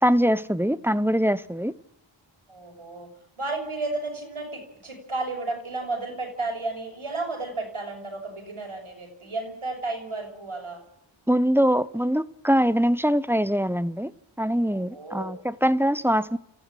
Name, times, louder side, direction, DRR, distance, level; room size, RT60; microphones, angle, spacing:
voice 1, 0.0-1.7 11.3-14.1 14.4-16.4, equal, 5° right, 0.8 m, -23 dB
voice 2, 2.5-3.1 3.4-10.8 14.7-15.4, right 3 dB, 80° right, 6.3 m, -33 dB
29.0 x 15.0 x 9.0 m
wide cardioid pair, 50°, 49 cm